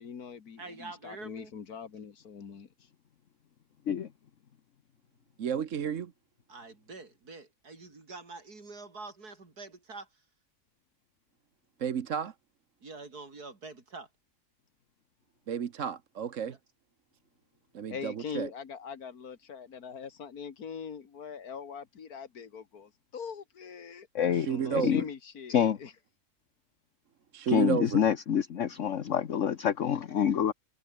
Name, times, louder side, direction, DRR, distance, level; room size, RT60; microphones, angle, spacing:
voice 1, 0.0-2.7 17.9-24.1 24.5-25.9, left 6 dB, 75° left, 2.2 m, -42 dB
voice 2, 0.6-1.5 6.5-10.1 12.8-14.1 16.4-16.6, right 3 dB, 90° right, 4.5 m, -46 dB
voice 3, 5.4-6.1 11.8-12.3 15.5-16.6 17.7-18.5 24.3-25.0 27.3-28.1, right 8 dB, 55° right, 1.4 m, -32 dB
voice 4, 24.1-25.0 25.5-25.8 27.5-30.5, left 8 dB, 55° left, 1.4 m, -27 dB
omnidirectional pair, 1.6 m